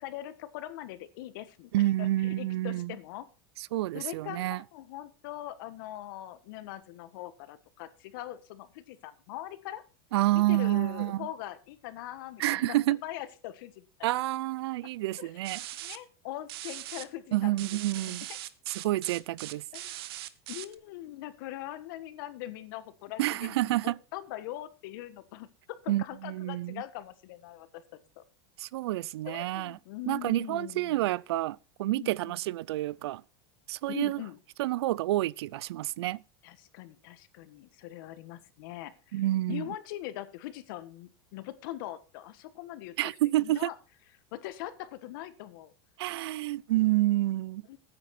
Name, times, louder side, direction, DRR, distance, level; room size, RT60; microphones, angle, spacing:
voice 1, 0.0-1.7 2.0-3.3 3.9-9.8 10.3-14.1 15.2-15.3 15.8-17.7 18.1-18.2 19.7-20.0 20.5-27.8 28.2-28.3 29.3-31.1 31.9-32.3 33.9-34.4 36.4-39.2 39.5-42.9 43.4-43.7 44.3-45.7 47.7-47.8, left 14 dB, 60° left, 1.5 m, -42 dB
voice 2, 1.7-3.0 3.6-4.6 10.1-11.3 12.4-13.0 14.0-15.6 17.3-18.3 18.7-19.6 23.2-24.0 25.9-26.8 28.6-29.8 30.1-33.2 33.7-34.2 34.6-36.2 39.1-39.7 43.0-43.7 46.0-47.6, right 16 dB, 90° right, 0.5 m, -29 dB
sound 1, 15.4-16.0 16.5-17.0 17.6-20.7, right 14 dB, 75° right, 1.1 m, -40 dB
14.0 x 9.7 x 4.3 m
supercardioid pair, 170°, 13 cm